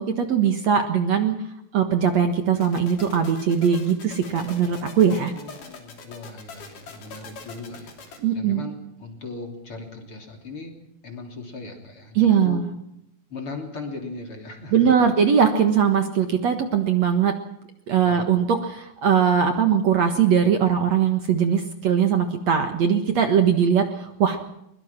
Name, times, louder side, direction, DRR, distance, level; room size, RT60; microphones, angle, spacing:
voice 1, 0.0-1.4 1.7-5.3 8.2-8.7 12.2-12.7 14.7-17.3 17.9-24.4, right 7 dB, 55° right, 6 dB, 2.3 m, -20 dB
sound 1, 2.6-8.2, left 4 dB, 65° left, 4.5 m, -42 dB
voice 2, 5.2-10.8 11.0-12.6 13.3-15.1 18.0-18.4, left 3 dB, 40° left, 3 dB, 3.8 m, -38 dB
23.0 x 22.0 x 6.0 m, 0.80 s
omnidirectional pair, 4.1 m